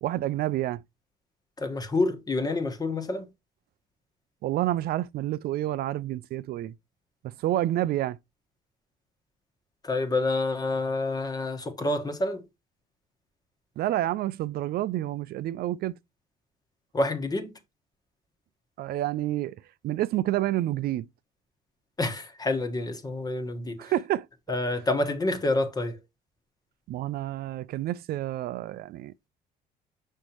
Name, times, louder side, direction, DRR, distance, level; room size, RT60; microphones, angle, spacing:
voice 1, 0.0-0.8 4.4-6.7 7.2-8.2 13.8-16.0 18.8-21.1 23.8-24.6 26.9-29.1, right 14 dB, 65° right, 0.4 m, -29 dB
voice 2, 1.6-3.3 9.8-12.4 16.9-17.5 22.0-23.9 24.5-26.0, left 2 dB, 25° left, 1.3 m, -28 dB
6.3 x 5.4 x 2.9 m
cardioid pair, 110°, 17 cm